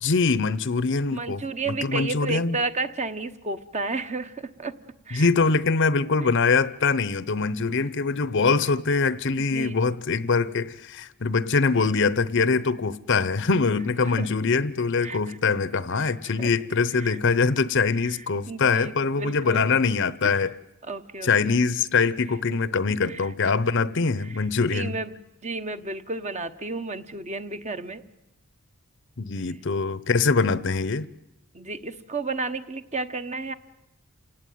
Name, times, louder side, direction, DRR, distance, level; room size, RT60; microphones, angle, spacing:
voice 1, 0.0-2.6 5.1-20.5 21.2-25.0 29.2-31.1, left 4 dB, 55° left, 0.8 m, -23 dB
voice 2, 1.1-4.7 5.1-5.3 9.4-9.8 14.0-14.3 15.0-15.5 15.9-16.5 16.9-17.2 18.0-18.1 18.5-20.0 20.2-20.4 20.8-21.5 22.5-22.6 23.0-23.3 23.6-23.7 24.2-25.2 25.4-28.0 31.5-33.5, right 3 dB, 30° right, 1.1 m, -32 dB
28.5 x 17.5 x 9.3 m
head